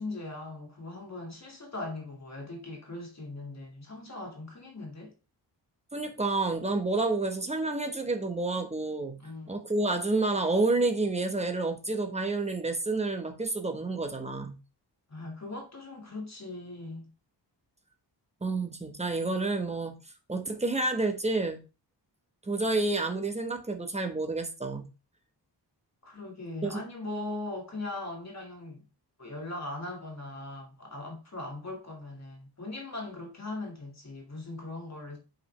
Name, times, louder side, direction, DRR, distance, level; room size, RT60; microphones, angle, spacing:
voice 1, 0.0-5.1 9.2-9.5 15.1-17.1 26.0-28.8 29.2-35.2, left 2 dB, 40° left, 2.3 m, -40 dB
voice 2, 5.9-9.2 9.5-14.6 18.4-20.0 20.3-21.6 22.5-24.9 26.6-26.8, right 2 dB, 15° right, 1.1 m, -29 dB
8.2 x 5.2 x 3.3 m
wide cardioid pair, 160°, 43 cm